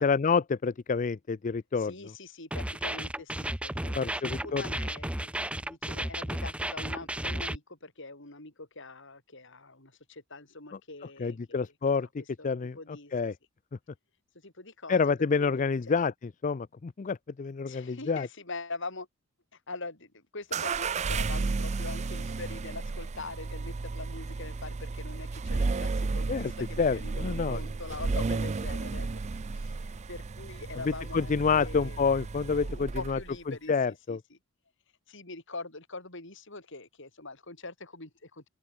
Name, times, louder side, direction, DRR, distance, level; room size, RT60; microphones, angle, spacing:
voice 1, 0.0-1.9 4.0-4.6 11.2-12.1 12.4-12.8 13.1-13.3 14.9-16.1 16.4-18.3 26.3-26.5 26.8-27.6 31.1-33.2 33.7-34.2, left 5 dB, 35° left, 0.4 m, -28 dB
voice 2, 1.7-5.3 5.6-11.7 12.2-13.1 14.3-15.1 15.4-15.5 15.9-16.0 17.6-19.1 19.5-32.0 32.7-34.4 35.1-38.5, left 3 dB, 60° left, 5.9 m, -43 dB
sound 1, 2.5-7.6, right 1 dB, 5° right, 0.8 m, -34 dB
sound 2, 20.5-33.4, right 3 dB, 30° right, 0.4 m, -33 dB
open air
head